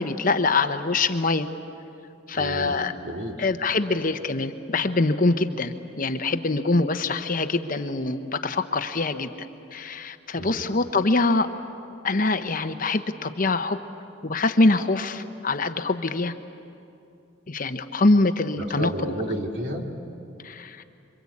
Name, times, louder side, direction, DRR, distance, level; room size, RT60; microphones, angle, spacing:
voice 1, 0.0-1.5 2.3-2.9 3.4-9.3 9.7-11.5 12.0-13.8 14.2-16.3 17.5-19.1 20.4-20.8, left 3 dB, 45° left, 8 dB, 1.0 m, -24 dB
voice 2, 2.3-2.7 3.0-3.5 10.3-10.6 18.6-19.9, equal, 65° right, 1 dB, 3.0 m, -31 dB
27.0 x 24.5 x 8.6 m, 2.6 s
head